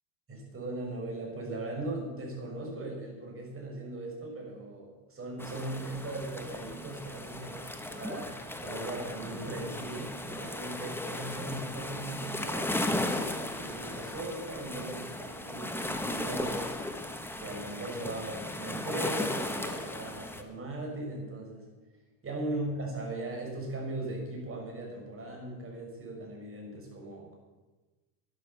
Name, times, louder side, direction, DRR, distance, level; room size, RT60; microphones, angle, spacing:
voice 1, 0.3-12.8 13.3-17.0 17.4-21.7 22.2-27.3, right 2 dB, 30° right, 0 dB, 6.1 m, -39 dB
sound 1, 5.4-20.4, left 1 dB, 5° left, 1.4 m, -36 dB
12.0 x 11.0 x 6.9 m, 1.2 s
supercardioid pair, 110°, 46 cm